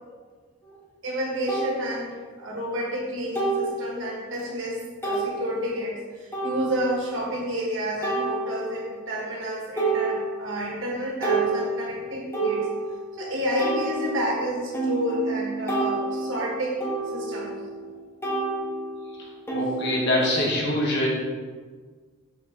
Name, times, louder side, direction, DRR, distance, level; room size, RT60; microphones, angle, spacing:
sound 1, 0.6-0.7 1.5-1.7 3.3-3.8 4.3-4.4 5.0-5.3 6.3-7.0 8.0-8.9 9.3-9.5 9.8-10.6 11.0-13.1 13.6-17.9 18.2-20.5, right 3 dB, 10° left, 0.9 m, -29 dB
voice 1, 1.0-12.7 13.1-17.5, equal, 55° right, -4 dB, 1.6 m, -30 dB
voice 2, 19.2-21.1, left 1 dB, 50° left, -3 dB, 1.3 m, -25 dB
5.8 x 5.8 x 3.0 m, 1.5 s
head